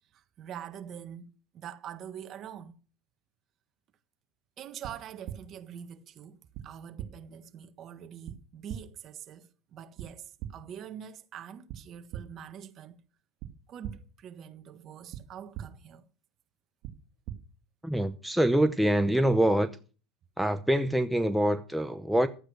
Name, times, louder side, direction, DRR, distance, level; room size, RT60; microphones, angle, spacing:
voice 1, 0.1-2.7 4.6-12.9 13.7-16.1, right 9 dB, 40° right, 1.5 m, -45 dB
sound 1, 4.8-4.9 5.3-5.4 6.5-6.6 7.0-7.1 8.3-8.4 8.7-8.8 10.0-10.1 10.4-10.5 11.7-11.8 12.1-12.2 13.4-13.5 13.8-13.9 15.1-15.2 15.5-15.6 16.8-16.9 17.3-17.4, right 11 dB, 60° right, 2.1 m, -37 dB
voice 2, 17.8-19.7 20.4-22.3, right 1 dB, ahead, 0.8 m, -25 dB
12.0 x 8.9 x 6.4 m
supercardioid pair, 110°, 0 cm